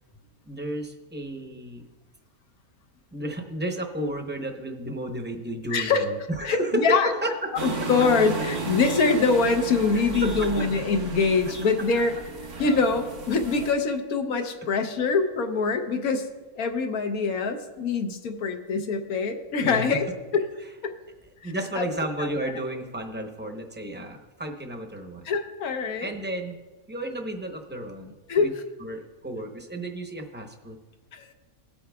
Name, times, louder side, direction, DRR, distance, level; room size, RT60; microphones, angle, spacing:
voice 1, 0.4-1.8 3.1-7.9 9.9-10.3 11.5-11.6 19.6-20.0 21.4-25.3 26.0-26.6 26.9-28.5 28.8-30.8, right 1 dB, 10° right, 3 dB, 0.6 m, -32 dB
voice 2, 5.7-6.0 6.4-7.1 7.6-12.2 12.6-16.2 16.5-20.0 20.3-20.5 20.8-20.9 21.4-21.9 22.2-22.3 25.2-26.1 28.3-28.5 31.1-31.2, left 4 dB, 80° left, 5 dB, 1.3 m, -24 dB
sound 1, 7.6-13.7, right 4 dB, 85° right, 2.0 m, -33 dB
17.5 x 8.5 x 2.3 m, 1.2 s
omnidirectional pair, 1.5 m